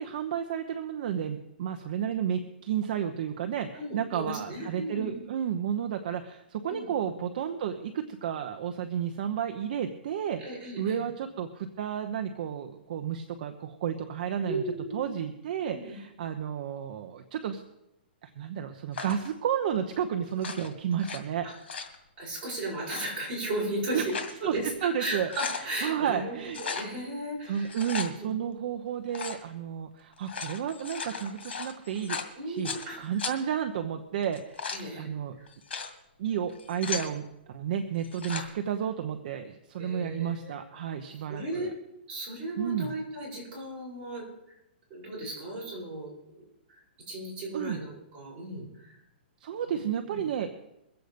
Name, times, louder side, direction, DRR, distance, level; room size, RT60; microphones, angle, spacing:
voice 1, 0.0-14.6 14.9-17.6 18.2-21.5 23.9-24.1 24.4-26.6 27.4-32.2 32.5-34.6 35.0-35.4 36.2-41.7 42.6-42.9 47.5-47.8 49.4-50.5, right 8 dB, 45° right, 7 dB, 0.9 m, -32 dB
voice 2, 3.7-5.1 6.7-6.9 10.4-11.0 14.5-15.1 15.7-16.0 21.4-21.5 22.2-24.2 24.4-27.7 28.1-28.3 32.4-33.0 34.7-35.1 35.4-35.5 38.3-38.4 39.8-40.6 41.3-41.7 42.1-44.3 44.9-46.4 46.7-46.8 47.1-48.9 49.6-49.8 50.1-50.2, right 1 dB, 20° right, -6 dB, 7.4 m, -35 dB
sound 1, 18.9-19.3 20.3-21.2 21.5-22.0 22.8-23.1 23.8-24.4 24.8-24.9 25.1-25.7 26.5-26.9 27.6-28.1 29.1-29.4 30.1-32.9 33.2-33.3 34.2-34.8 35.5-35.9 36.5-37.1 38.0-38.5, left 5 dB, 75° left, 2.3 m, -36 dB
22.5 x 8.0 x 5.2 m, 0.86 s
hypercardioid pair, 160°, 6 cm